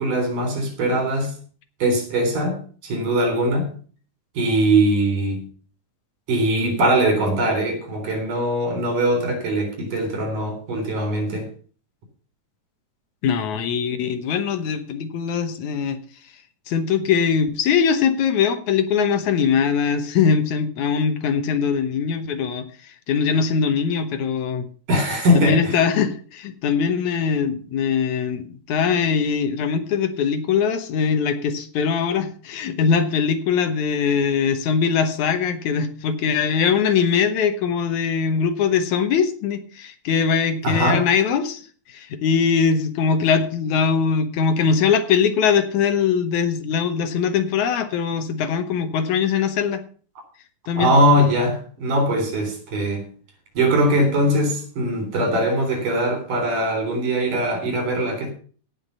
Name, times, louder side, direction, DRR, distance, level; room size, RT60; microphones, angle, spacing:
voice 1, 0.0-1.3 1.8-3.7 4.4-5.5 6.3-11.5 24.9-25.8 40.6-41.0 50.8-53.0 53.6-58.3, right 1 dB, 75° right, 4 dB, 5.3 m, -21 dB
voice 2, 13.2-16.0 16.7-24.6 25.3-41.6 41.9-49.8 50.7-51.0, left 6 dB, 70° left, 9 dB, 2.4 m, -21 dB
17.5 x 6.0 x 5.5 m, 0.41 s
omnidirectional pair, 3.7 m